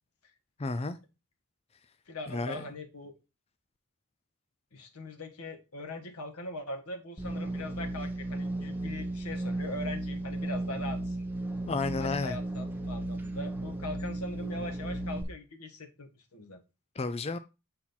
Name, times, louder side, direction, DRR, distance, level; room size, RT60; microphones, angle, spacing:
voice 1, 0.6-1.0 2.3-2.6 11.7-12.3 17.0-17.4, left 3 dB, 30° left, 0.4 m, -31 dB
voice 2, 2.1-3.1 4.7-11.2 12.0-16.6, left 2 dB, 85° left, 1.6 m, -41 dB
sound 1, 7.2-15.2, right 1 dB, 10° right, 1.0 m, -35 dB
7.5 x 4.4 x 4.1 m
head